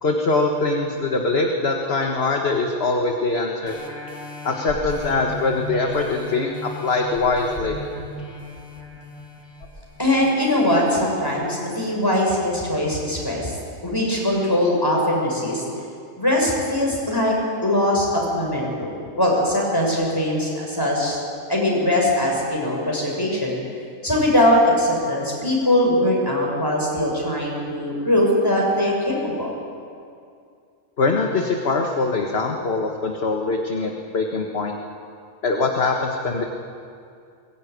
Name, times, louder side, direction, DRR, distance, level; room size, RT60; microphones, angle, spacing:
voice 1, 0.0-3.8 4.5-7.8 31.0-34.8 35.4-36.4, left 3 dB, 45° left, 2 dB, 1.7 m, -23 dB
sound 1, 3.7-10.9 11.4-11.5, left 1 dB, 70° left, 3.6 m, -36 dB
voice 2, 10.0-13.5 13.8-15.6 16.2-17.3 17.6-21.2 21.5-23.6 24.0-29.5, left 1 dB, 15° left, -2 dB, 6.3 m, -21 dB
21.5 x 19.5 x 9.4 m, 2.4 s
omnidirectional pair, 1.5 m